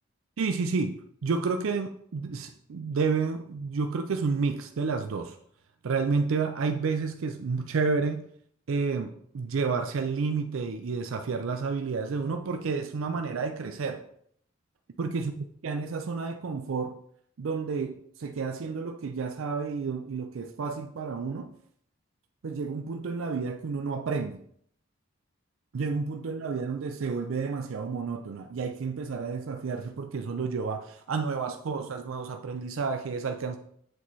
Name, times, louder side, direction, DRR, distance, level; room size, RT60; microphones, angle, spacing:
voice 1, 0.4-5.4 5.8-8.2 8.7-14.1 15.0-17.0 17.4-21.5 22.4-24.4 25.7-33.6, right 4 dB, 75° right, 0.4 m, -30 dB
8.0 x 4.1 x 3.1 m
head